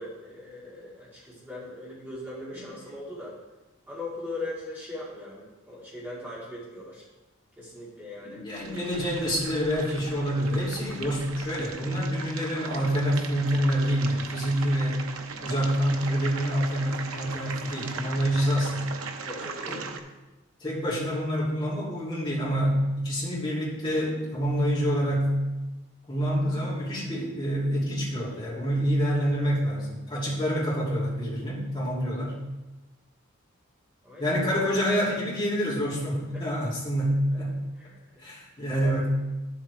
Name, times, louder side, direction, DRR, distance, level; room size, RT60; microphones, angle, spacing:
voice 1, 0.0-3.3 3.9-7.0 7.6-8.4 19.2-19.9 28.4-28.7 30.1-30.3 34.0-34.4 36.3-36.4 37.8-38.2 38.8-38.9, left 2 dB, 10° right, -8 dB, 2.2 m, -40 dB
voice 2, 8.2-15.1 15.4-18.8 19.7-19.8 20.6-25.4 26.1-32.3 34.2-37.6 38.2-39.1, equal, 25° left, -7 dB, 3.0 m, -27 dB
sound 1, 8.5-20.0, right 5 dB, 85° right, 0.8 m, -39 dB
9.6 x 7.5 x 3.4 m, 1.1 s
head